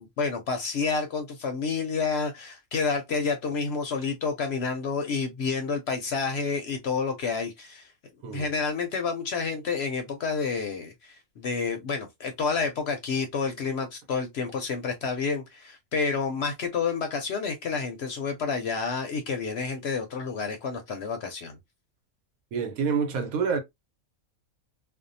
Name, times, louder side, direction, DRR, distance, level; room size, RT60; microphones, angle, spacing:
voice 1, 0.0-7.9 8.3-21.6, left 5 dB, 65° left, 0.7 m, -29 dB
voice 2, 22.5-23.6, right 6 dB, 85° right, 1.1 m, -27 dB
2.6 x 2.1 x 2.6 m
omnidirectional pair, 1.5 m